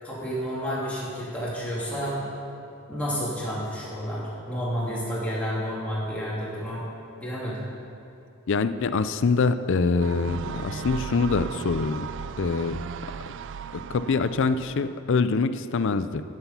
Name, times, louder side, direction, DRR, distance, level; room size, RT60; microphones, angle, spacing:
voice 1, 0.0-2.2 2.9-6.9 7.2-7.6, equal, 5° left, -8 dB, 3.1 m, -30 dB
voice 2, 8.5-12.1 12.4-12.8 13.7-16.2, left 4 dB, 55° left, 12 dB, 0.4 m, -24 dB
sound 1, 10.0-14.9, right 7 dB, 55° right, 0.3 m, -37 dB
14.5 x 8.0 x 5.7 m, 2.8 s
head